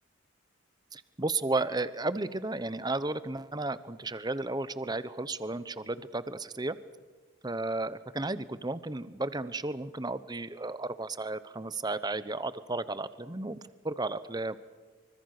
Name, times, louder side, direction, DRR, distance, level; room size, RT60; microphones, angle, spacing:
voice 1, 0.9-6.8 7.4-13.6 13.8-14.6, right 2 dB, 20° right, 14 dB, 0.9 m, -33 dB
25.0 x 25.0 x 6.6 m, 1.3 s
head